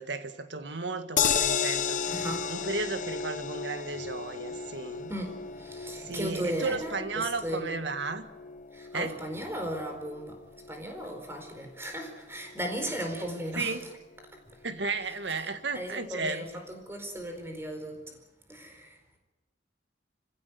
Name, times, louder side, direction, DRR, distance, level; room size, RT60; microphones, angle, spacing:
voice 1, 0.0-2.0 2.5-5.1 6.0-8.3 8.9-9.2 13.6-13.8 14.6-16.4, right 3 dB, 70° right, 9 dB, 1.8 m, -34 dB
sound 1, 1.2-13.4 13.8-13.9 14.2-14.3, left 7 dB, 45° left, 0.8 m, -34 dB
voice 2, 2.1-2.7 5.1-7.8 8.7-10.4 10.7-13.9 15.7-18.1 18.5-19.2, equal, 15° right, 4 dB, 4.5 m, -36 dB
27.0 x 16.5 x 9.5 m, 1.1 s
head